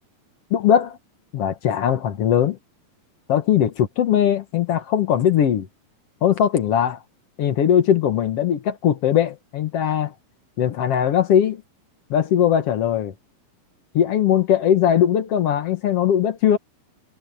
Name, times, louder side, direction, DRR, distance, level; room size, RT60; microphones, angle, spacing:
voice 1, 0.5-1.0 1.3-2.6 3.3-5.7 6.2-7.0 7.4-10.1 10.6-11.6 12.1-13.1 13.9-16.6, left 9 dB, 55° left, 1.9 m, -20 dB
omnidirectional pair, 4.0 m